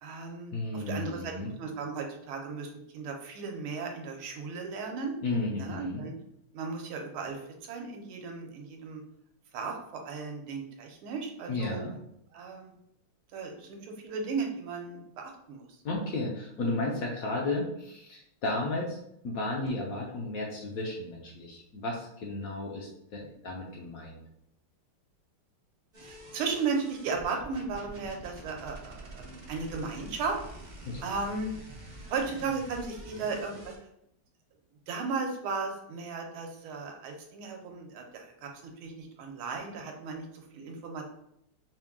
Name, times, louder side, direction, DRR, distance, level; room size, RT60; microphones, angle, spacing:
voice 1, 0.0-1.3 1.6-5.1 5.6-6.1 6.5-9.0 9.5-11.8 12.3-12.7 13.3-15.6 26.0-30.4 31.0-31.5 32.0-33.7 34.9-41.1, right 4 dB, 80° right, 2 dB, 1.6 m, -35 dB
voice 2, 0.5-1.5 5.2-6.0 11.5-11.9 15.8-19.0 19.2-24.2 30.8-31.0, left 2 dB, 70° left, -1 dB, 0.8 m, -33 dB
sound 1, 25.9-33.8, right 1 dB, 65° right, 0.4 m, -47 dB
5.6 x 2.2 x 3.5 m, 0.76 s
omnidirectional pair, 2.4 m